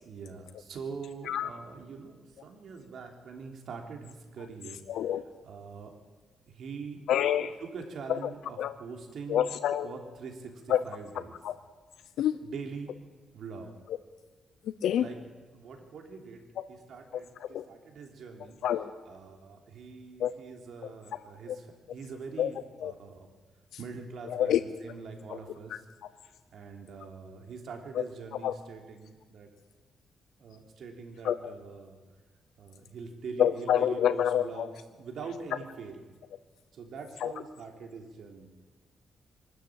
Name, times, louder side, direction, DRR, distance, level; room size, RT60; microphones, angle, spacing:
voice 1, 0.0-5.1 5.4-5.9 6.5-7.0 7.6-9.5 9.8-11.4 12.4-12.9 13.3-13.7 15.0-15.2 15.5-18.6 19.1-23.1 23.8-25.8 26.5-29.5 30.4-32.0 32.6-36.0 36.7-38.5, right 5 dB, 65° right, 3 dB, 3.3 m, -43 dB
voice 2, 4.9-5.2 7.1-7.5 8.6-8.7 9.3-9.9 10.7-10.8 11.4-11.5 12.2-12.4 14.8-15.1 17.5-17.6 18.6-18.9 20.2-20.3 22.4-22.5 22.8-22.9 24.3-24.6 28.4-28.5 31.2-31.4 33.4-34.7 37.2-37.3, left 10 dB, 85° left, 11 dB, 0.7 m, -26 dB
23.0 x 13.0 x 8.8 m, 1.3 s
cardioid pair, 135°, 0 cm